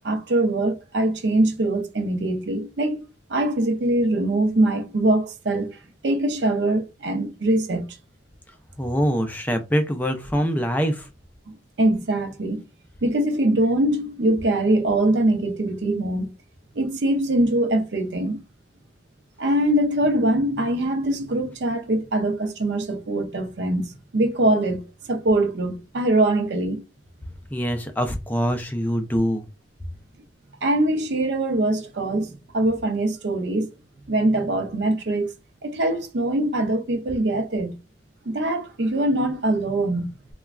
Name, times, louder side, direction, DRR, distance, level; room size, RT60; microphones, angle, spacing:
voice 1, 0.0-3.0 3.3-5.8 6.0-8.0 11.8-12.6 13.0-16.3 16.7-18.4 19.4-26.8 30.6-33.7 34.1-35.3 35.6-37.8 38.3-40.1, right 1 dB, 70° right, 0.6 m, -23 dB
voice 2, 8.8-11.1 27.5-29.4, equal, 10° left, 0.4 m, -24 dB
3.0 x 2.2 x 2.4 m
head